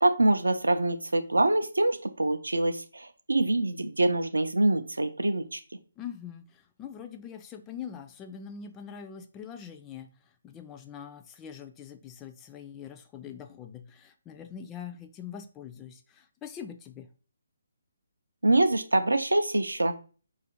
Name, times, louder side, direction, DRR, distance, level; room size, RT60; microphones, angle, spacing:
voice 1, 0.0-5.6 18.4-20.0, right 2 dB, 75° right, 9 dB, 0.4 m, -25 dB
voice 2, 6.0-10.1 10.4-17.1, left 8 dB, 15° left, 7 dB, 0.3 m, -43 dB
4.7 x 2.4 x 2.9 m, 0.38 s
figure-of-eight pair, 140°, 0 cm